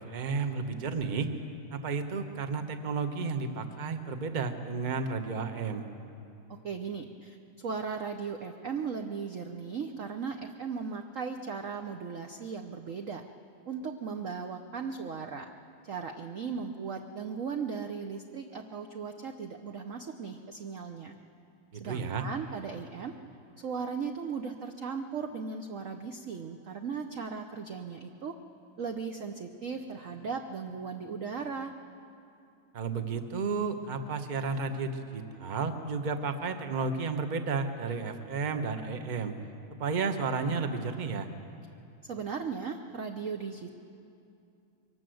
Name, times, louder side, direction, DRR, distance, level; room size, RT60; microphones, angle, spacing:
voice 1, 0.0-1.3 1.7-5.8 21.7-22.3 32.7-39.3 39.8-41.3, right 4 dB, 30° right, 7 dB, 0.9 m, -32 dB
voice 2, 6.6-13.2 13.7-15.5 15.8-21.2 21.8-23.1 23.6-28.3 28.8-31.7 42.0-43.7, right 5 dB, 55° right, 5 dB, 0.9 m, -37 dB
23.5 x 19.0 x 7.8 m, 2.7 s
omnidirectional pair, 2.2 m